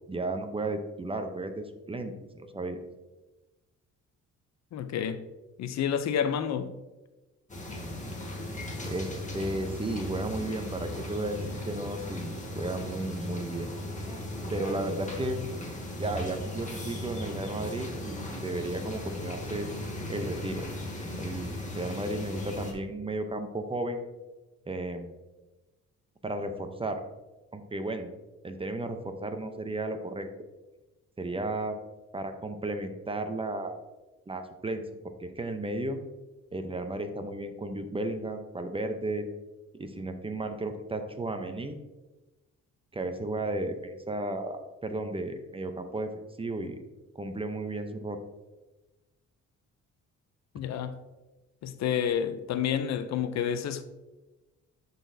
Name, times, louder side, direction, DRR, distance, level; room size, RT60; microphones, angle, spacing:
voice 1, 0.1-2.8 8.9-11.4 11.7-13.7 14.5-15.4 16.0-19.7 20.1-20.7 21.2-24.0 24.7-25.1 26.2-27.0 27.5-28.1 28.4-30.3 31.2-31.8 32.1-33.8 34.3-36.0 36.5-39.3 39.8-41.8 42.9-46.1 46.4-46.8 47.1-48.2, right 2 dB, 20° right, 0.7 m, -34 dB
voice 2, 4.7-5.2 5.6-6.7 50.5-51.0 51.6-53.8, left 8 dB, 65° left, 0.5 m, -29 dB
sound 1, 7.5-22.7, left 1 dB, 25° left, 1.5 m, -37 dB
10.5 x 4.0 x 2.7 m
cardioid pair, 90°, 30 cm